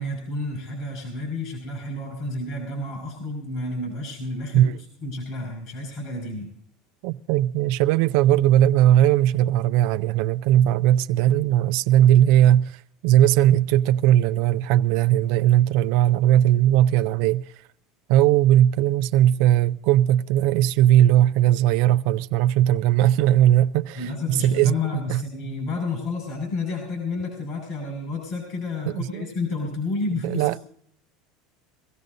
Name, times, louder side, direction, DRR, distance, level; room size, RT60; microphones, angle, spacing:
voice 1, 0.0-4.7 5.0-6.5 24.0-30.6, left 3 dB, 60° left, 5.6 m, -30 dB
voice 2, 7.0-17.5 18.1-24.7 25.1-25.2 28.9-29.2 30.2-30.6, right 12 dB, 65° right, 0.4 m, -19 dB
24.0 x 15.0 x 2.6 m
supercardioid pair, 125°, 0 cm